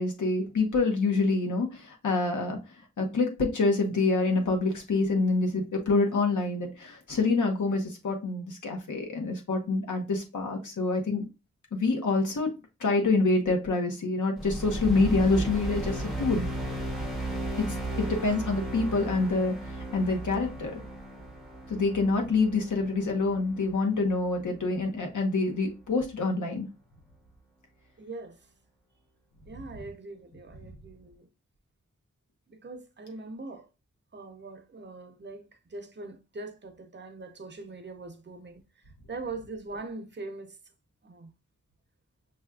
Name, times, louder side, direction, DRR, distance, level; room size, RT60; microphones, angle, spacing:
voice 1, 0.0-2.6 3.0-11.3 11.7-12.5 12.8-16.4 17.7-20.8 21.7-26.7, left 3 dB, 90° left, 1.1 m, -26 dB
sound 1, 14.4-24.8, right 1 dB, ahead, 0.8 m, -35 dB
voice 2, 28.0-28.4 29.5-31.3 32.5-33.7 34.1-40.6 41.0-41.3, right 3 dB, 40° right, 0.7 m, -42 dB
6.1 x 2.4 x 2.3 m
wide cardioid pair, 110°, 29 cm